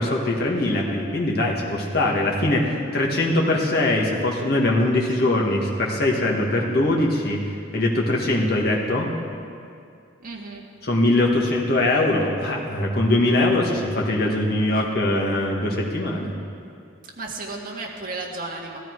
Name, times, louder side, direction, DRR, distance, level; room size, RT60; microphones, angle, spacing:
voice 1, 0.0-7.4 7.7-9.1 10.8-16.3, left 1 dB, 55° left, -2 dB, 1.9 m, -22 dB
voice 2, 10.2-10.6 17.2-18.8, right 3 dB, 45° right, -1 dB, 1.8 m, -33 dB
15.0 x 13.5 x 4.8 m, 2.4 s
head